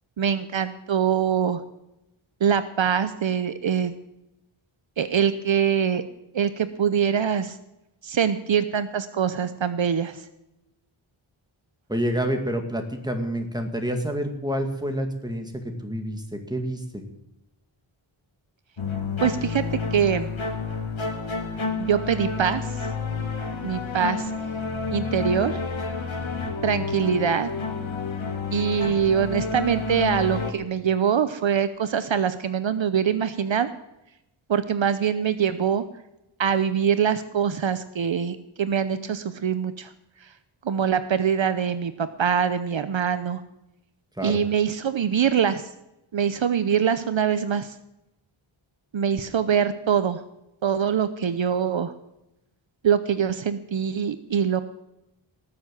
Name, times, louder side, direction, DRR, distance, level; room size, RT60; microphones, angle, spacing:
voice 1, 0.2-1.6 2.4-3.9 5.0-6.0 6.3-7.6 8.0-10.2 19.2-20.3 21.8-22.7 23.6-24.3 24.9-25.6 26.6-27.5 28.5-33.7 34.5-35.8 36.4-39.9 40.2-40.3 40.6-43.4 44.2-45.7 46.1-47.7 48.9-50.2 50.6-51.9 52.8-54.6, right 7 dB, 65° right, 12 dB, 0.8 m, -24 dB
voice 2, 11.9-17.0 44.2-44.4, equal, 10° right, 4 dB, 2.2 m, -28 dB
sound 1, 18.8-30.5, left 4 dB, 70° left, 1.7 m, -30 dB
19.0 x 7.4 x 7.7 m, 0.88 s
wide cardioid pair, 100°, 48 cm